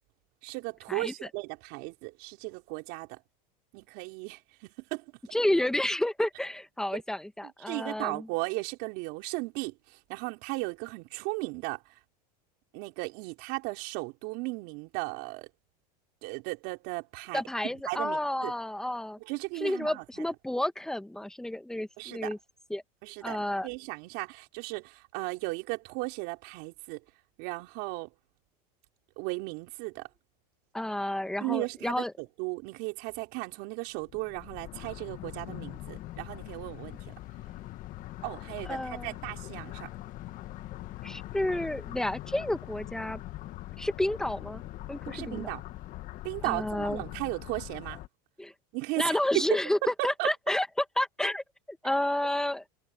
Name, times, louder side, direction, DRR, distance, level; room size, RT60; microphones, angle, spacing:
voice 1, 0.4-3.2 3.7-5.0 6.9-7.0 7.4-11.8 12.7-15.5 16.2-18.5 19.2-20.2 22.0-22.3 23.0-27.0 27.4-28.1 29.2-30.1 31.4-37.1 38.2-39.9 45.1-45.6 46.2-48.0 48.7-49.5 49.8-50.3, right 26 dB, 60° right, 4.8 m, -36 dB
voice 2, 5.3-8.3 17.3-19.2 19.6-22.4 22.7-22.8 23.2-23.7 30.7-32.1 38.6-39.1 41.0-43.2 43.8-44.6 44.9-45.5 46.4-47.0 48.4-48.5 49.0-49.8 50.0-50.7 51.0-52.6, left 1 dB, 5° left, 1.6 m, -30 dB
sound 1, 34.0-48.1, left 15 dB, 40° left, 1.4 m, -42 dB
supercardioid pair, 135°, 20 cm